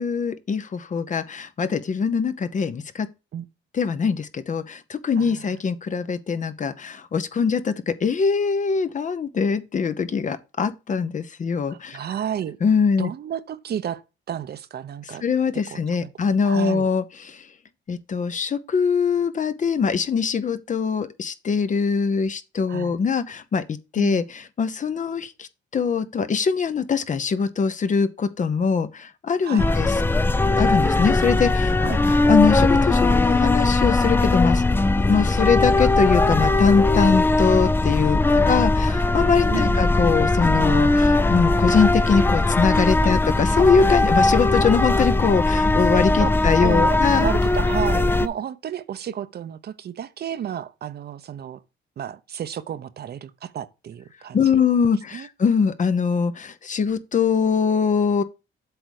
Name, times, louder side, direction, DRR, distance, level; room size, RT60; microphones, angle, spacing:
voice 1, 0.0-3.1 3.7-12.0 12.6-13.1 15.2-17.4 17.9-24.2 24.6-25.5 25.7-29.9 30.6-31.7 32.3-34.6 35.1-47.3 54.3-58.2, left 5 dB, 40° left, 0.8 m, -22 dB
voice 2, 5.2-5.5 11.7-12.6 13.0-14.0 14.3-15.2 15.7-16.1 16.4-16.9 22.7-23.0 24.0-24.3 29.4-29.7 31.8-32.0 38.3-38.5 39.5-39.8 43.0-43.1 46.2-46.3 46.6-51.6 52.0-54.6 55.1-55.3, right 9 dB, 55° right, 0.7 m, -32 dB
sound 1, 29.6-48.3, left 2 dB, 10° left, 0.4 m, -19 dB
7.9 x 3.5 x 6.5 m
cardioid pair, 90°, 20 cm